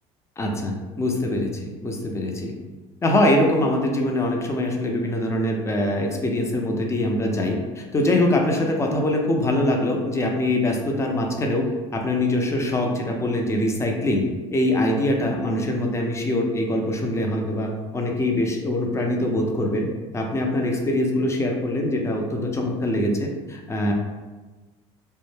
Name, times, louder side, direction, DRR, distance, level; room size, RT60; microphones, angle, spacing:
voice 1, 0.4-2.5 3.0-14.2 14.5-19.9 20.1-23.9, left 1 dB, 20° left, 1 dB, 0.5 m, -23 dB
2.1 x 2.1 x 3.1 m, 1.2 s
supercardioid pair, 85°, 15 cm